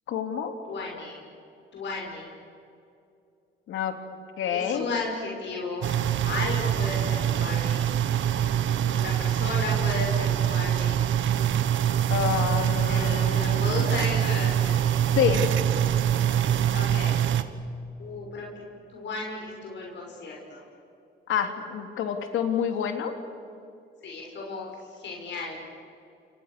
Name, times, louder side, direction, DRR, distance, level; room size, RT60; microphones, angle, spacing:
voice 1, 0.1-0.5 3.7-3.9 4.4-4.9 12.1-13.9 15.1-15.4 21.3-23.1, left 8 dB, 85° left, 6 dB, 3.2 m, -28 dB
voice 2, 0.7-1.2 1.7-2.3 4.5-5.9 6.2-7.8 8.8-11.0 12.9-14.8 16.7-17.2 18.0-18.6 18.9-20.6 24.0-25.6, left 3 dB, 65° left, -1 dB, 6.4 m, -34 dB
sound 1, 5.8-17.4, right 10 dB, 75° right, 1.5 m, -24 dB
29.0 x 28.5 x 6.9 m, 2.6 s
cardioid pair, 90°, 20 cm